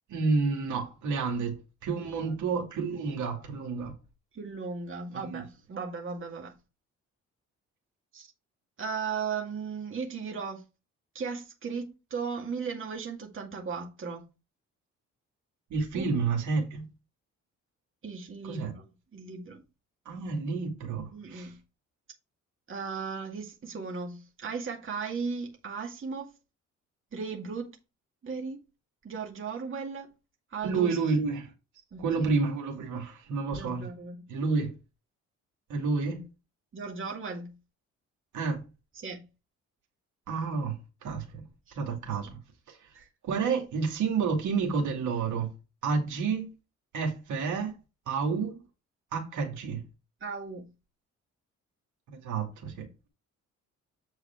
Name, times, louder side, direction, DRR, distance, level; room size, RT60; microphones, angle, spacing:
voice 1, 0.1-1.6 1.8-3.9 5.1-5.4 15.7-16.8 18.4-18.7 20.1-21.5 30.6-31.5 32.0-33.9 34.3-34.7 35.7-36.2 38.3-38.6 40.3-40.8 41.0-41.4 41.8-42.3 42.7-42.8 43.2-45.5 45.8-46.5 46.9-47.7 48.1-48.6 49.1-49.8 52.2-52.9, right 4 dB, 75° right, 2.5 m, -29 dB
voice 2, 4.3-6.5 8.1-8.3 8.8-10.6 11.1-14.2 15.9-16.1 18.0-18.8 19.1-19.6 21.1-21.6 22.7-26.3 27.1-27.8 28.2-28.6 29.0-30.1 30.5-31.0 31.9-32.3 33.5-34.2 36.7-37.5 38.9-39.2 41.7-41.8 42.0-42.3 42.9-43.1 50.2-50.7, right 5 dB, 45° right, 2.1 m, -36 dB
8.4 x 4.8 x 4.5 m
cardioid pair, 90°, 30 cm